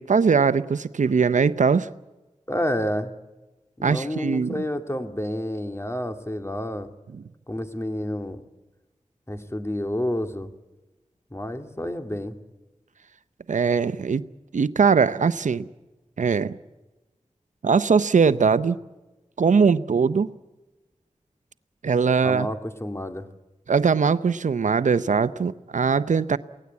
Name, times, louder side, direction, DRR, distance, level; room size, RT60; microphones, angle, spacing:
voice 1, 0.0-1.9 3.8-4.6 13.5-14.2 14.5-15.7 16.2-16.5 17.6-18.8 19.4-20.3 21.8-22.5 23.7-26.4, right 5 dB, 80° right, 15 dB, 0.7 m, -21 dB
voice 2, 2.5-3.1 3.8-6.9 7.5-8.4 9.3-10.5 11.3-12.4 22.2-23.2, left 1 dB, 20° left, 7 dB, 2.3 m, -29 dB
23.5 x 17.5 x 8.4 m, 1.1 s
cardioid pair, 45°, 13 cm